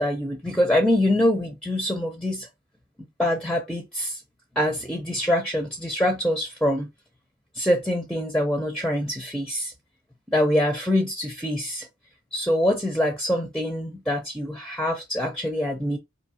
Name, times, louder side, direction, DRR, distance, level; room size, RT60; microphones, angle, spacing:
voice 1, 0.0-2.5 3.2-4.2 4.6-6.9 7.6-9.7 10.3-11.9 12.3-16.0, left 1 dB, 5° left, 0.4 m, -24 dB
4.4 x 2.7 x 2.7 m
head